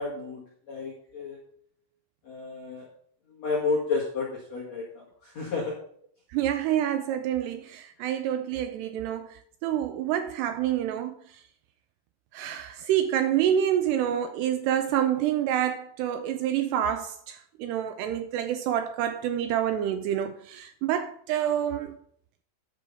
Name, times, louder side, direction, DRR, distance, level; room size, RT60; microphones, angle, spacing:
voice 1, 0.0-1.4 2.2-2.9 3.3-5.8 8.0-8.1, left 4 dB, 45° left, 2.7 m, -31 dB
voice 2, 6.3-9.3 9.6-11.2 12.3-22.0, right 10 dB, 85° right, 2.4 m, -27 dB
10.5 x 6.1 x 6.8 m
omnidirectional pair, 5.3 m